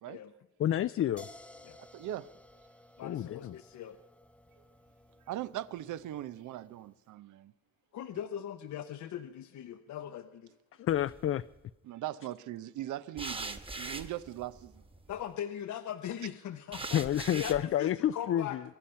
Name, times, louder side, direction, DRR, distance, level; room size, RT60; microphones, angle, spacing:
voice 1, 0.6-1.3 3.0-3.5 10.8-11.4 16.9-18.6, left 11 dB, 45° left, 0.4 m, -29 dB
sound 1, 1.2-7.0, left 1 dB, 5° left, 0.8 m, -56 dB
voice 2, 1.8-2.3 5.3-7.5 11.8-14.8, right 13 dB, 80° right, 0.7 m, -40 dB
voice 3, 3.0-4.0 7.9-10.5 15.1-17.0 17.3-18.6, left 10 dB, 70° left, 0.9 m, -40 dB
sound 2, 10.9-11.4 13.2-15.2 16.7-17.6, right 3 dB, 20° right, 1.3 m, -41 dB
24.0 x 10.5 x 5.6 m
cardioid pair, 90°, 30 cm